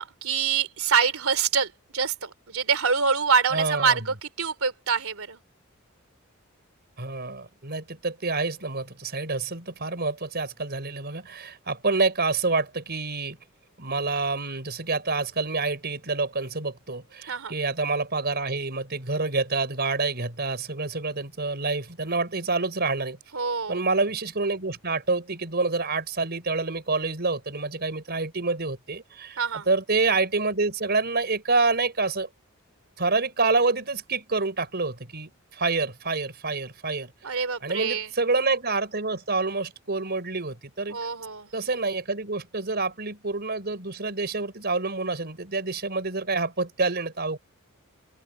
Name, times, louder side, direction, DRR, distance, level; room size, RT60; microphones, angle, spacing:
voice 1, 0.0-5.4 17.3-17.6 23.3-23.8 29.4-29.7 37.2-38.1 40.9-41.5, right 6 dB, 90° right, 2.9 m, -25 dB
voice 2, 3.5-4.0 7.0-13.4 13.8-23.2 23.7-29.4 29.7-32.3 33.0-37.1 37.6-41.0 41.5-47.4, right 3 dB, 50° right, 4.7 m, -27 dB
open air
head